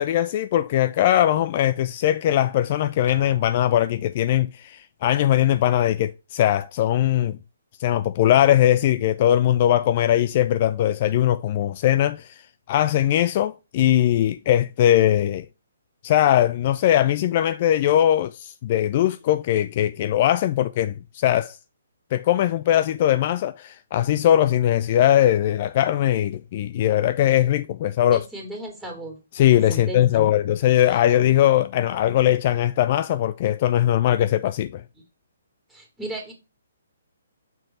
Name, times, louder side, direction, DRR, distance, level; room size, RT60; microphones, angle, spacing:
voice 1, 0.0-7.4 7.8-12.4 12.7-15.4 16.0-21.6 22.1-28.3 29.3-34.8, left 12 dB, 40° left, 0.3 m, -20 dB
Drum, 3.1-4.3, equal, 80° right, 1.4 m, -43 dB
voice 2, 28.1-29.2 29.7-30.3 30.9-31.0 34.9-35.0 35.7-36.3, equal, 5° right, 2.6 m, -35 dB
6.9 x 3.8 x 4.2 m
figure-of-eight pair, 130°, 0 cm